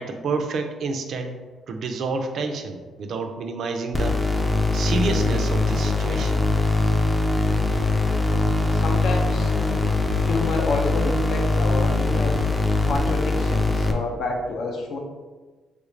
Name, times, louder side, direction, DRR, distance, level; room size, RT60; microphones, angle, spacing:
voice 1, 0.0-1.3 1.7-6.4, right 4 dB, 65° right, 5 dB, 0.4 m, -29 dB
sound 1, 3.9-13.9, left 3 dB, 10° left, 0.4 m, -22 dB
voice 2, 8.7-9.5 10.3-12.4 12.9-15.0, left 2 dB, 75° left, 1 dB, 0.6 m, -28 dB
3.3 x 2.5 x 3.1 m, 1.3 s
cardioid pair, 90°, 0 cm